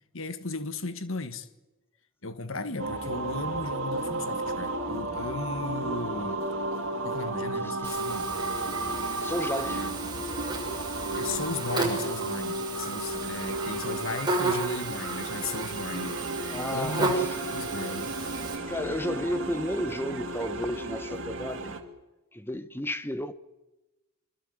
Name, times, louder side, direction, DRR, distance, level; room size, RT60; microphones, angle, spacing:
voice 1, 0.1-1.5 2.2-6.4 7.0-8.4 9.6-10.3 11.1-16.2 16.7-17.2 17.5-18.2, left 3 dB, 60° left, 1.6 m, -36 dB
sound 1, 2.8-21.8, right 2 dB, 60° right, 2.8 m, -33 dB
voice 2, 7.6-8.0 9.2-9.8 16.5-17.3 18.7-21.8 22.3-23.3, left 1 dB, 10° left, 1.2 m, -33 dB
Buzz, 7.8-18.5, right 3 dB, 20° right, 6.9 m, -33 dB
25.0 x 24.5 x 8.1 m
head